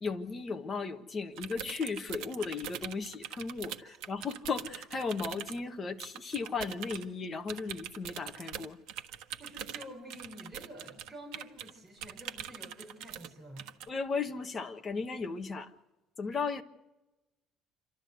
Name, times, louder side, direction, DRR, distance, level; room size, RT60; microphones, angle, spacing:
voice 1, 0.0-3.8 4.1-8.8 13.9-15.7 16.2-16.6, left 4 dB, 20° left, 4 dB, 1.4 m, -35 dB
sound 1, 1.4-5.6 6.0-7.1 7.5-11.7 12.0-13.3 13.6-13.9, right 10 dB, 85° right, 1.3 m, -42 dB
voice 2, 9.4-13.7, equal, 5° right, -3 dB, 5.0 m, -49 dB
28.0 x 13.0 x 8.1 m, 1.0 s
cardioid pair, 175°, 0 cm